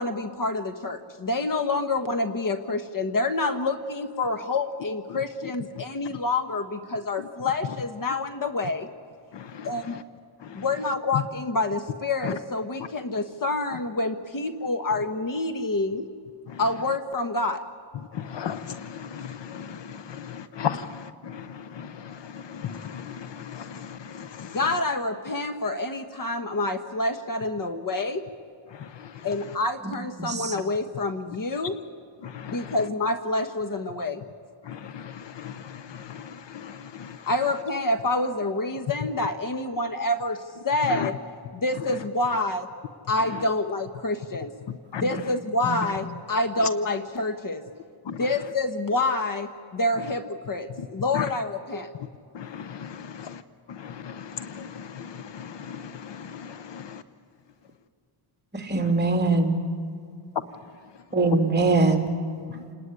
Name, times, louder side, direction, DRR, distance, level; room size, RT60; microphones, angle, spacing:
voice 1, 0.0-8.9 9.6-10.0 10.5-16.0 16.6-17.6 24.4-28.2 29.2-31.8 32.5-34.2 37.2-41.2 41.5-42.7 43.1-44.5 45.0-47.6 48.2-51.9, left 2 dB, 40° left, 8 dB, 1.3 m, -27 dB
voice 2, 9.3-9.7 10.5-10.6 12.2-12.3 16.5-16.6 18.1-24.6 28.8-29.1 32.2-32.7 34.7-37.2 40.9-41.1 44.9-45.0 48.1-48.2 51.1-51.2 52.3-53.4 53.7-57.0, left 8 dB, 55° left, 13 dB, 0.9 m, -36 dB
voice 3, 30.2-30.6 45.6-45.7 58.5-59.6 61.1-62.1, right 3 dB, 20° right, 3 dB, 2.9 m, -22 dB
29.0 x 19.0 x 9.8 m, 2.2 s
cardioid pair, 125°, 50 cm